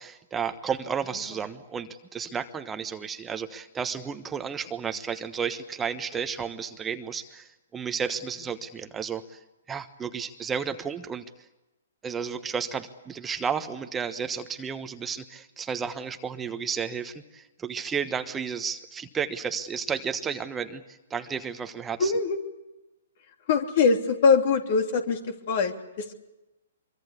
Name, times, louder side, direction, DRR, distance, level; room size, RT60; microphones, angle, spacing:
voice 1, 0.0-9.4 9.7-11.2 12.0-22.1, right 6 dB, 15° right, 8 dB, 1.2 m, -32 dB
voice 2, 22.0-22.4 23.5-26.1, left 5 dB, 50° left, 6 dB, 3.1 m, -23 dB
24.5 x 23.5 x 8.4 m, 0.99 s
hypercardioid pair, 125°, 0 cm